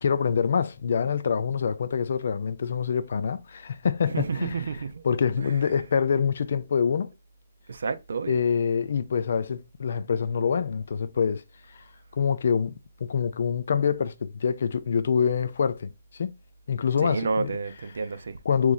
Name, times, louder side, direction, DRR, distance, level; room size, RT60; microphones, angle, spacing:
voice 1, 0.0-4.5 5.0-7.1 8.3-11.4 11.7-11.8 12.1-12.7 13.0-16.3 16.7-17.5 18.4-18.7, left 6 dB, 55° left, 0.4 m, -25 dB
voice 2, 4.1-5.0 5.4-5.5 7.7-8.4 17.0-18.4, right 4 dB, 70° right, 0.5 m, -30 dB
3.0 x 2.6 x 3.8 m
hypercardioid pair, 165°, 0 cm